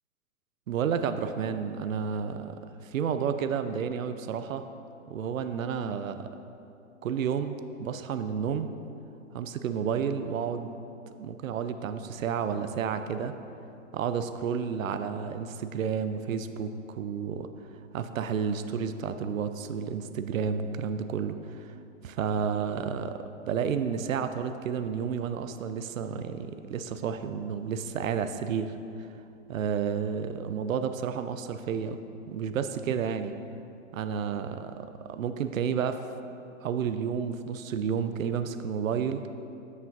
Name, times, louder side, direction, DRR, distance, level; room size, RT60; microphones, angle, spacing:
voice 1, 0.7-2.5 2.8-4.7 5.1-6.3 7.0-8.7 9.3-10.7 11.2-13.3 13.9-17.5 17.9-21.7 22.0-29.1 29.5-32.0 32.3-33.3 33.9-36.0 36.6-39.2, right 7 dB, 90° right, 10 dB, 0.5 m, -31 dB
8.1 x 7.2 x 2.6 m, 2.7 s
hypercardioid pair, 140°, 39 cm